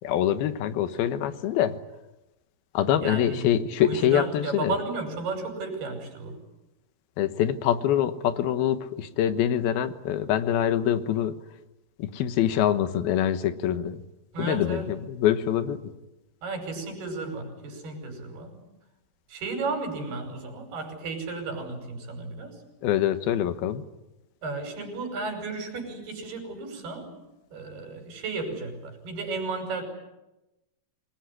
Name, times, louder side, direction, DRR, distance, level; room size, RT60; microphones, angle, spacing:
voice 1, 0.0-1.8 2.7-4.7 7.2-11.4 12.0-14.0 14.4-15.9 22.8-23.8, left 10 dB, 75° left, 11 dB, 3.1 m, -25 dB
voice 2, 3.0-3.4 3.8-6.4 14.3-14.9 16.4-18.6 19.3-22.6 24.4-27.1 27.5-29.8, right 3 dB, 90° right, 4 dB, 7.2 m, -33 dB
26.5 x 20.0 x 9.8 m, 1.0 s
omnidirectional pair, 4.4 m